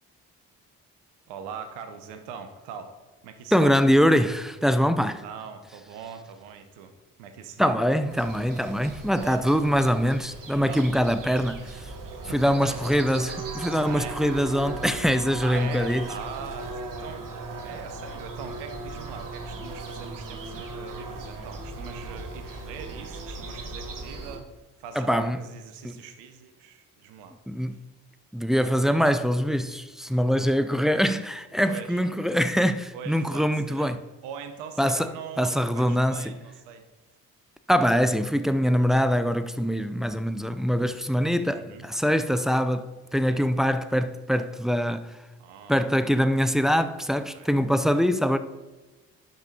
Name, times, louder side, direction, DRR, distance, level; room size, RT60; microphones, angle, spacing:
voice 1, 1.3-2.9 3.2-3.8 5.2-6.9 7.2-7.8 9.2-9.6 10.7-10.9 12.3-12.9 13.8-14.2 15.4-16.7 17.0-17.2 17.6-24.5 24.8-27.4 27.7-27.8 31.6-32.0 32.9-36.8 41.5-41.8 43.3-43.4 45.4-45.8 47.3-47.5, right 7 dB, 80° right, 0.8 m, -41 dB
voice 2, 3.5-5.2 7.6-11.7 12.3-16.1 25.0-25.4 25.8-25.9 27.5-27.8 28.3-34.0 34.8-35.1 35.4-36.3 37.7-45.1 45.7-48.4, equal, ahead, 0.4 m, -23 dB
sound 1, 8.1-24.4, right 3 dB, 50° right, 1.3 m, -38 dB
11.5 x 5.2 x 2.8 m
hypercardioid pair, 40°, 41 cm